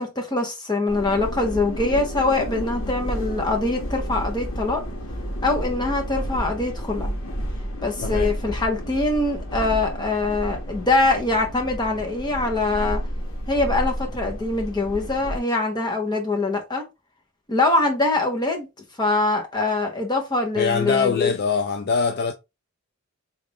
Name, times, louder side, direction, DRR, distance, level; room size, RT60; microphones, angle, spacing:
voice 1, 0.0-4.8 5.4-7.2 7.8-13.0 13.5-16.8 17.5-18.7 19.0-21.3, left 2 dB, 20° left, 0.9 m, -23 dB
sound 1, 0.9-15.4, equal, 80° left, 1.0 m, -31 dB
voice 2, 8.0-8.3 20.6-22.3, left 5 dB, 50° left, 0.3 m, -23 dB
3.2 x 2.5 x 3.4 m
head